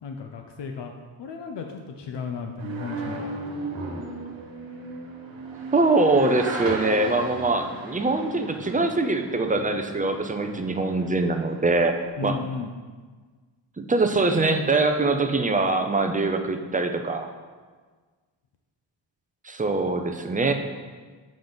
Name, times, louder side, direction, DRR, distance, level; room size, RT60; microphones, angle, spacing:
voice 1, 0.0-3.4 3.8-3.9 12.2-12.8, left 5 dB, 65° left, 3 dB, 0.6 m, -35 dB
sound 1, 2.6-12.1, right 2 dB, 85° right, 1.5 m, -36 dB
voice 2, 5.7-11.9 12.2-12.4 13.8-17.3 19.4-20.5, right 3 dB, 20° right, 5 dB, 0.5 m, -23 dB
7.2 x 5.1 x 3.9 m, 1.4 s
wide cardioid pair, 115°, 45 cm